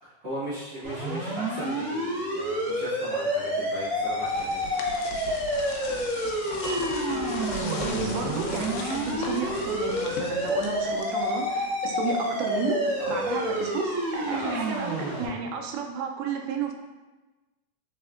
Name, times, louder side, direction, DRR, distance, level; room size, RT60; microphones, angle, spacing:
voice 1, 0.0-5.0 13.0-13.2 14.3-14.7, equal, 60° right, -13 dB, 0.8 m, -37 dB
sound 1, 0.8-15.3, equal, 40° right, 1.1 m, -29 dB
sound 2, 3.8-11.6, left 3 dB, 85° left, 2.2 m, -38 dB
Bell, 6.6-11.7, left 1 dB, 55° left, 0.9 m, -38 dB
voice 2, 7.1-16.7, right 5 dB, 85° right, 3 dB, 2.2 m, -32 dB
4.5 x 4.1 x 2.4 m, 1.2 s
omnidirectional pair, 3.8 m